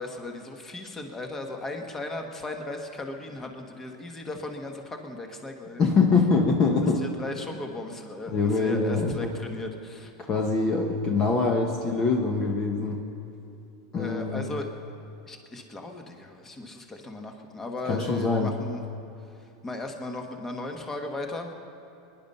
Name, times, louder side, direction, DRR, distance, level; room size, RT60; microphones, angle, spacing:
voice 1, 0.0-5.9 6.7-10.1 14.0-14.7 15.3-18.9 19.4-21.5, left 2 dB, 15° left, 4 dB, 1.6 m, -36 dB
voice 2, 5.8-7.0 8.3-9.3 10.3-13.0 13.9-14.4 17.9-18.5, left 4 dB, 35° left, 2 dB, 1.4 m, -24 dB
21.5 x 11.0 x 5.6 m, 2.6 s
supercardioid pair, 115°, 2 cm